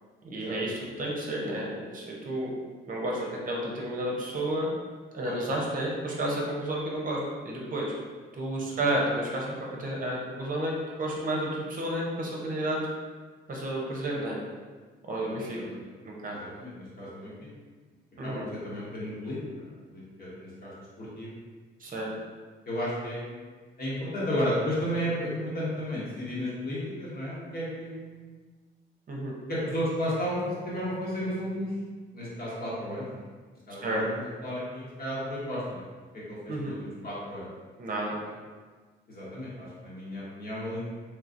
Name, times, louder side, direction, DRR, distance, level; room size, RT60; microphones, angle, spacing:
voice 1, 0.2-2.5 2.9-4.7 5.1-7.9 8.3-9.5 9.8-10.7 11.0-12.8 13.5-14.4 15.1-15.6 16.0-16.4 18.2-18.4 21.8-22.1 29.1-29.3 33.8-34.0 36.5-36.7 37.8-38.1, right 1 dB, 45° right, -3 dB, 0.8 m, -31 dB
voice 2, 15.2-15.9 16.3-17.5 18.2-20.7 21.0-21.3 22.7-23.4 23.8-28.4 29.5-31.7 32.1-33.2 33.7-35.8 36.1-37.5 39.1-40.9, equal, 50° left, -8 dB, 1.4 m, -33 dB
3.2 x 3.0 x 2.5 m, 1.4 s
cardioid pair, 90°, 20 cm